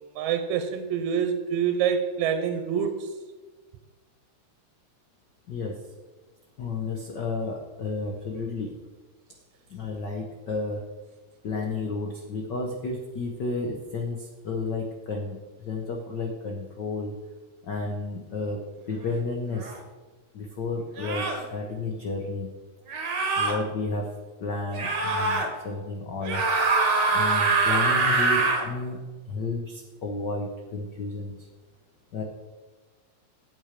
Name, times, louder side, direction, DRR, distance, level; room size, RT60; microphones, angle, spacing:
voice 1, 0.2-3.1, right 7 dB, 90° right, 7 dB, 2.0 m, -26 dB
voice 2, 5.5-5.8 6.6-8.8 9.7-10.8 11.4-17.1 17.6-19.7 20.3-22.5 22.9-23.0 23.4-24.1 24.4-26.4 27.1-29.0 29.3-31.5 32.1-32.2, left 3 dB, 75° left, 1 dB, 1.0 m, -32 dB
sound 1, 19.6-19.8 21.0-21.4 22.9-23.5 24.7-25.5 26.2-28.6, right 3 dB, 45° right, 1.6 m, -24 dB
9.1 x 7.1 x 5.0 m, 1.3 s
omnidirectional pair, 3.3 m